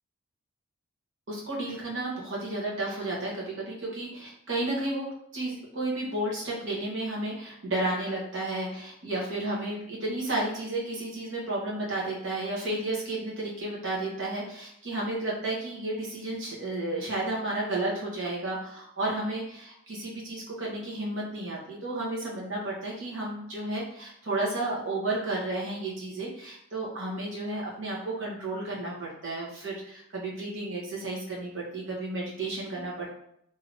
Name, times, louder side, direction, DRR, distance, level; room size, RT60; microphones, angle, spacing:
voice 1, 1.3-5.1 5.3-33.1, right 2 dB, 65° right, -4 dB, 1.0 m, -32 dB
3.3 x 2.8 x 2.5 m, 0.73 s
head